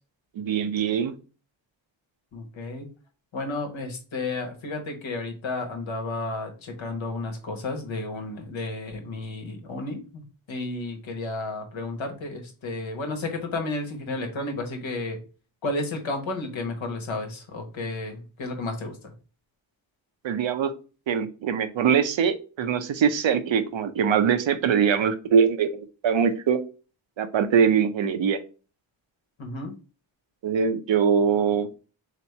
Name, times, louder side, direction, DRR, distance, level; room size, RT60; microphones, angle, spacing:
voice 1, 0.4-1.1 20.2-20.7 21.1-26.6 27.2-28.4 30.4-31.7, right 7 dB, 75° right, 9 dB, 0.7 m, -22 dB
voice 2, 2.3-2.9 3.3-10.2 10.5-15.2 15.6-19.1 29.4-29.7, left 2 dB, 80° left, 4 dB, 1.2 m, -32 dB
3.3 x 3.0 x 4.1 m, 0.35 s
cardioid pair, 60°, 46 cm